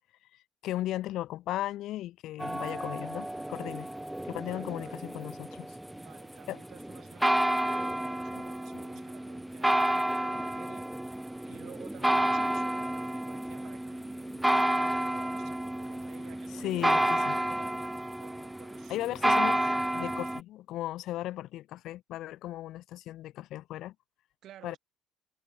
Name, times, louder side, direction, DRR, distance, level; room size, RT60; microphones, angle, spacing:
voice 1, 0.3-3.9 4.2-5.8 6.5-6.6 8.4-8.5 8.7-8.8 16.5-17.4 18.9-19.7 19.9-23.9 24.6-24.8, left 14 dB, 70° left, 0.3 m, -36 dB
sound 1, 2.4-20.4, right 1 dB, 5° right, 0.6 m, -30 dB
voice 2, 3.7-5.1 5.9-10.9 11.4-19.4 24.4-24.8, right 12 dB, 65° right, 6.5 m, -54 dB
supercardioid pair, 80°, 0 cm